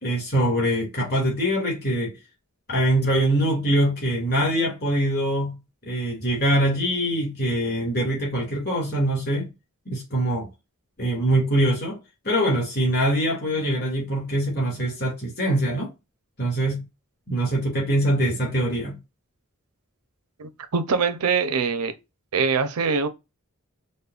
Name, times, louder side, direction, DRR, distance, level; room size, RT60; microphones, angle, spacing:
voice 1, 0.0-2.2 2.7-9.5 9.9-10.5 11.0-12.0 12.2-15.9 16.4-16.8 17.3-19.0, right 1 dB, 45° left, 2.2 m, -23 dB
voice 2, 20.4-21.9 22.3-23.1, right 5 dB, 80° right, 0.6 m, -23 dB
5.2 x 2.2 x 2.4 m
head